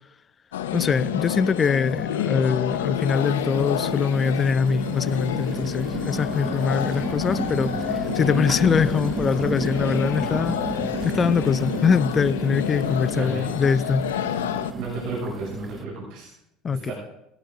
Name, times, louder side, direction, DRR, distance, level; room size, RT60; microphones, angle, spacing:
sound 1, 0.5-14.7, left 10 dB, 85° left, 0.8 m, -29 dB
voice 1, 0.7-10.6 11.0-14.1 16.6-16.9, left 6 dB, 35° left, 0.6 m, -23 dB
sound 2, 0.8-0.9 1.4-2.0 2.7-15.8, right 4 dB, 25° right, 0.9 m, -33 dB
voice 2, 13.1-13.5 14.7-16.3 16.9-17.0, right 3 dB, 65° right, 6.8 m, -32 dB
18.5 x 11.5 x 3.9 m
hypercardioid pair, 75°, 0 cm